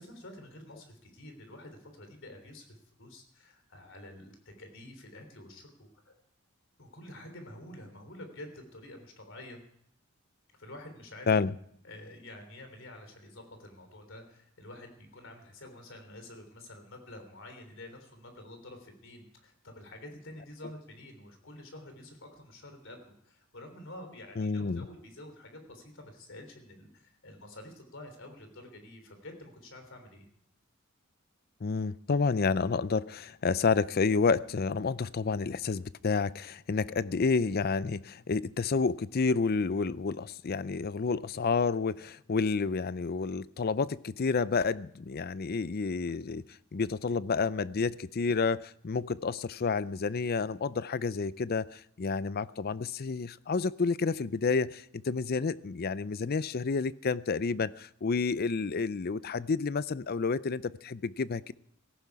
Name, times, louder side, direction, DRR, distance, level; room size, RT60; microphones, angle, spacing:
voice 1, 0.0-6.1 6.8-9.6 10.6-11.3 11.8-30.3, left 1 dB, 60° left, 6 dB, 3.5 m, -48 dB
voice 2, 24.4-24.9 31.6-46.4 46.7-61.5, left 4 dB, 45° left, 17 dB, 0.5 m, -30 dB
17.5 x 15.0 x 4.8 m, 0.69 s
head